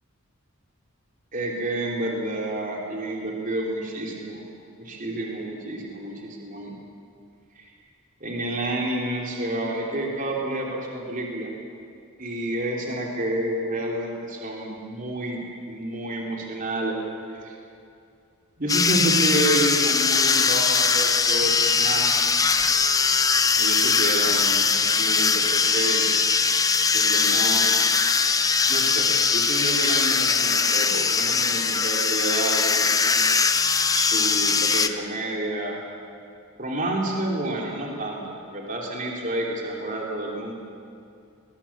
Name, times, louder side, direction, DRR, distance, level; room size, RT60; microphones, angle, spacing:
voice 1, 1.3-4.4 4.8-6.8 7.6-7.7 8.2-11.5 12.2-15.4 15.7-17.0 17.3-17.6 18.6-22.2 23.5-26.0 26.9-27.7 28.7-33.2 33.9-35.8 36.6-40.5, right 1 dB, 40° right, -1 dB, 3.1 m, -29 dB
sound 1, 18.7-34.9, left 5 dB, 15° left, 0.6 m, -21 dB
21.5 x 20.5 x 7.2 m, 2.5 s
head